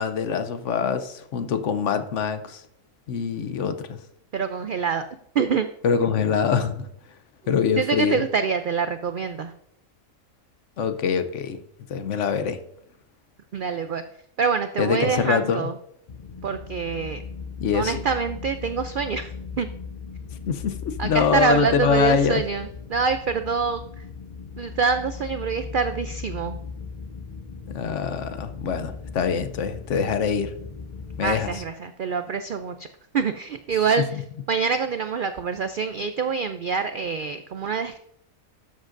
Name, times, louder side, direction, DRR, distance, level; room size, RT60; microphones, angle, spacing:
voice 1, 0.0-2.6 3.1-4.0 5.8-6.9 7.5-8.2 10.8-11.6 11.9-12.6 14.8-15.6 17.6-17.9 20.5-22.4 27.7-30.5 31.2-31.5, left 6 dB, 65° left, 1.0 m, -24 dB
voice 2, 4.3-5.1 5.3-5.7 7.8-9.5 13.5-14.0 14.4-15.8 16.4-17.2 17.7-19.7 21.0-24.1 24.6-26.6 31.2-32.9 33.1-38.0, right 6 dB, 85° right, 0.4 m, -26 dB
sound 1, 16.1-31.6, left 5 dB, 50° left, 0.4 m, -37 dB
12.0 x 7.5 x 2.5 m
omnidirectional pair, 1.4 m